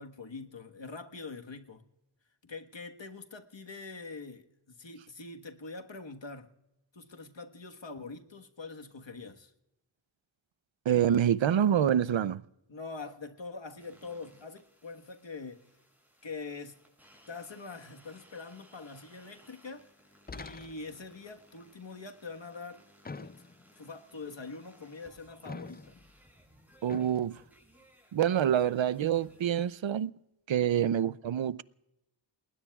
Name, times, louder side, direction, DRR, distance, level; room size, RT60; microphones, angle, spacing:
voice 1, 0.0-1.8 2.4-6.5 6.9-9.5 12.7-15.7 16.2-16.8 17.3-19.9 20.3-22.8 23.2-23.4 23.7-26.0 30.6-30.9, left 4 dB, 65° left, 1.5 m, -44 dB
voice 2, 10.9-12.4 26.8-27.4 28.1-30.1 30.5-31.6, right 9 dB, 70° right, 0.6 m, -26 dB
sound 1, 13.8-29.7, equal, 5° right, 7.4 m, -62 dB
sound 2, 20.3-21.1 23.0-23.8 25.5-26.1 26.9-27.3, left 3 dB, 20° left, 0.5 m, -45 dB
29.0 x 20.0 x 2.4 m
wide cardioid pair, 55°, 48 cm